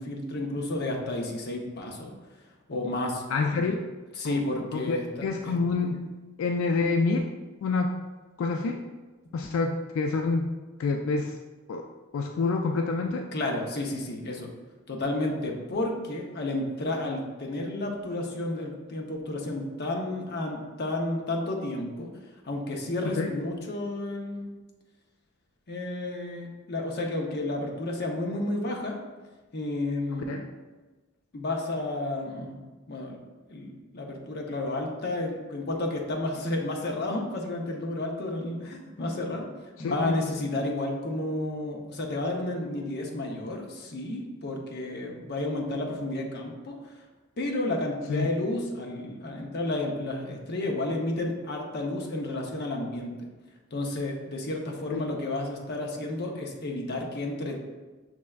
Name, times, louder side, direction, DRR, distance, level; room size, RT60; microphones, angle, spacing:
voice 1, 0.0-2.1 2.7-3.2 4.2-5.1 5.4-5.6 13.3-14.5 14.9-22.1 22.4-24.5 25.7-29.0 29.5-30.3 31.3-32.6 32.9-33.2 33.5-39.5 39.8-46.7 47.4-53.1 53.7-57.6, left 2 dB, 55° left, 1 dB, 0.7 m, -31 dB
voice 2, 3.3-3.8 4.2-4.4 4.7-6.0 6.4-7.2 7.6-8.0 8.4-8.8 9.3-10.5 10.8-11.4 11.7-11.9 12.1-13.3 23.2-23.3 30.3-30.5 39.8-40.2 48.1-48.3 54.9-55.1, left 4 dB, 85° left, 3 dB, 0.3 m, -27 dB
6.1 x 3.2 x 2.3 m, 1.3 s
head